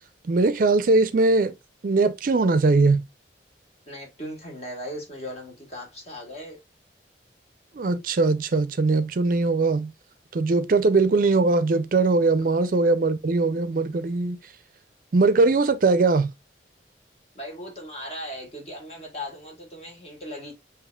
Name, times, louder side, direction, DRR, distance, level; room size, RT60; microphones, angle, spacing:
voice 1, 0.2-1.5 1.8-3.0 7.7-9.9 10.3-14.4 15.1-16.3, right 3 dB, 50° right, 0.4 m, -21 dB
voice 2, 3.9-6.6 17.3-20.5, equal, 35° left, 1.6 m, -38 dB
6.7 x 2.9 x 2.3 m
head